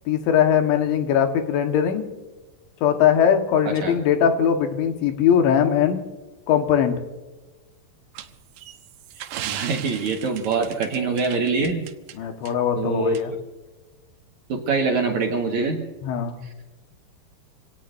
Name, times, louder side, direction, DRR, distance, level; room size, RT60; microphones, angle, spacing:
voice 1, 0.1-2.1 2.8-6.0 6.5-7.0 12.2-13.3 16.0-16.4, left 8 dB, 85° left, 5 dB, 3.8 m, -20 dB
voice 2, 3.6-4.0 9.4-11.8 12.8-13.4 14.5-15.8, right 4 dB, 55° right, 1 dB, 2.3 m, -24 dB
sound 1, 8.1-12.1 12.5-12.6 13.1-13.2, right 11 dB, 85° right, 2.0 m, -36 dB
27.5 x 18.0 x 2.7 m, 1.2 s
omnidirectional pair, 5.1 m